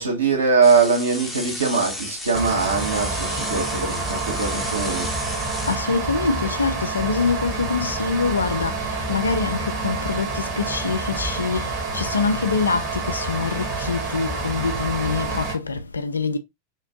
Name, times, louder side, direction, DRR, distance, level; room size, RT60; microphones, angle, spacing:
voice 1, 0.0-5.1, right 5 dB, 70° right, 1.1 m, -21 dB
sound 1, 0.6-5.7, left 2 dB, 5° left, 0.6 m, -33 dB
sound 2, 2.3-15.6, right 3 dB, 35° right, 1.0 m, -28 dB
voice 2, 5.7-16.4, left 4 dB, 75° left, 0.4 m, -25 dB
2.9 x 2.5 x 2.7 m
figure-of-eight pair, 90°, 0 cm